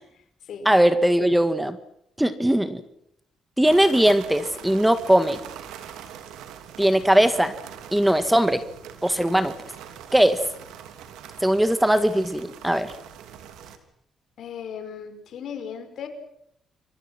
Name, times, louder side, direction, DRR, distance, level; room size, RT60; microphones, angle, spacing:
voice 1, 0.7-1.8 2.2-2.8 3.6-5.4 6.8-7.5 7.9-8.6 9.0-9.5 10.1-10.4 11.4-12.9, right 1 dB, 5° right, 11 dB, 1.9 m, -19 dB
sound 1, 3.6-13.8, right 9 dB, 90° right, 2.9 m, -43 dB
voice 2, 14.4-16.1, left 7 dB, 70° left, 8 dB, 5.1 m, -36 dB
29.5 x 23.5 x 6.1 m, 0.73 s
cardioid pair, 90°, 0 cm